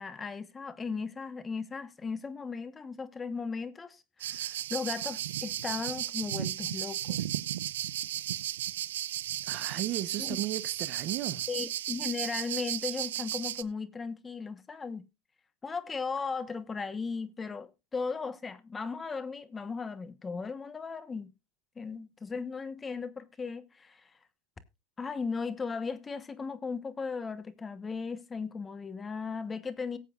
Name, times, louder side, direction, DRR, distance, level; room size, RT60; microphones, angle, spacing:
voice 1, 0.0-7.3 10.2-10.4 11.5-15.1 15.6-21.3 21.8-24.2 25.0-30.0, left 5 dB, 20° left, 1.1 m, -37 dB
sound 1, 4.2-13.6, right 12 dB, 85° right, 0.5 m, -34 dB
voice 2, 9.4-11.5, right 14 dB, 50° right, 0.9 m, -35 dB
18.0 x 8.2 x 2.4 m
hypercardioid pair, 110°, 0 cm